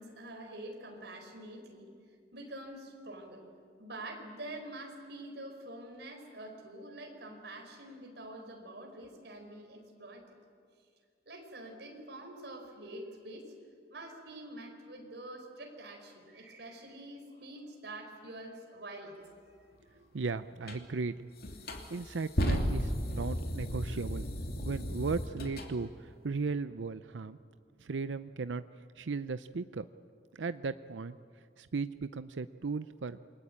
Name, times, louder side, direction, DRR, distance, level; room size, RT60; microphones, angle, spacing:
voice 1, 0.0-1.9 2.3-3.4 3.8-10.4 11.2-13.5 13.9-19.3 19.6-19.7, right 1 dB, 60° right, 2 dB, 5.1 m, -46 dB
voice 2, 20.1-21.3 21.9-24.3 24.6-27.4 27.8-28.6 29.0-29.9 30.3-31.2 31.6-33.2, right 4 dB, 80° right, 12 dB, 0.6 m, -36 dB
sound 1, 20.7-20.8 21.4-25.7, equal, 55° left, 3.0 m, -34 dB
28.0 x 22.5 x 8.9 m, 2.2 s
head